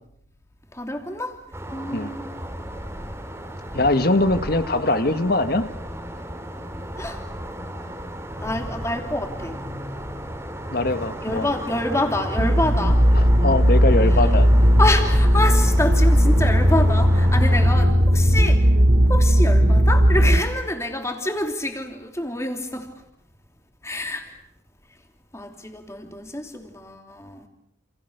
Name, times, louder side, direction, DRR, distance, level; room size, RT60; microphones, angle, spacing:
voice 1, 0.7-1.4 1.7-2.3 3.8-3.9 7.0-7.2 8.4-9.6 11.2-13.0 14.1-14.3 14.8-18.6 19.1-22.9 23.8-24.3 25.3-27.5, left 1 dB, 15° left, 5 dB, 3.1 m, -27 dB
sound 1, 1.5-17.7, equal, 15° right, 2.9 m, -34 dB
voice 2, 3.7-5.7 10.7-11.5 13.1-14.5, left 2 dB, 50° left, 10 dB, 1.5 m, -22 dB
sound 2, 12.4-20.4, equal, 55° right, 2.6 m, -16 dB
29.0 x 28.0 x 6.6 m, 0.76 s
head